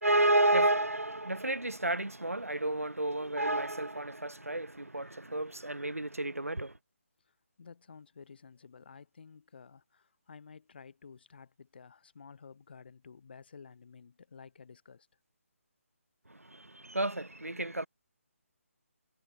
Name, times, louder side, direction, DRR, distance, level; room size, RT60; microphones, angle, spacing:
voice 1, 0.0-6.7 16.3-17.9, right 1 dB, 80° right, 2.0 m, -31 dB
voice 2, 7.3-15.1, left 5 dB, 45° left, 7.1 m, -53 dB
figure-of-eight pair, 150°, 8 cm